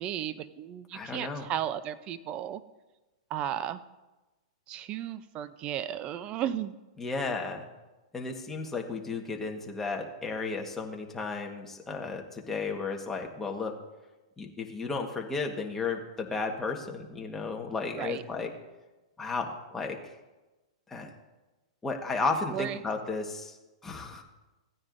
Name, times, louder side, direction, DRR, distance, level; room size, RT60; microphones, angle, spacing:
voice 1, 0.0-2.6 3.3-3.8 4.7-6.7 18.0-18.2 22.5-22.8, right 10 dB, 30° right, 14 dB, 0.6 m, -34 dB
voice 2, 0.9-1.5 7.0-7.7 8.1-13.7 14.4-18.5 19.2-20.0 20.9-21.1 21.8-23.6 23.8-24.2, left 4 dB, 10° left, 1 dB, 1.4 m, -33 dB
16.5 x 9.6 x 2.6 m, 1.1 s
hypercardioid pair, 135°, 3 cm